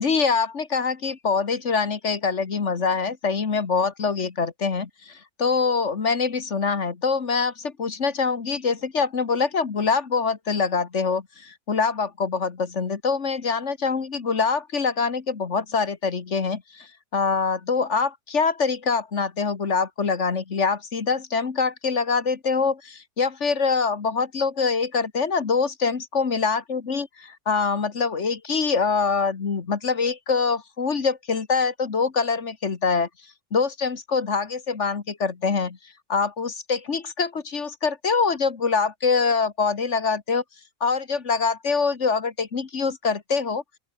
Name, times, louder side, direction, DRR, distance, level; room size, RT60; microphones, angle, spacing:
voice 1, 0.0-33.1 33.5-35.8 36.1-40.4 40.8-43.6, left 5 dB, 55° left, 1.9 m, -24 dB
open air
omnidirectional pair, 1.5 m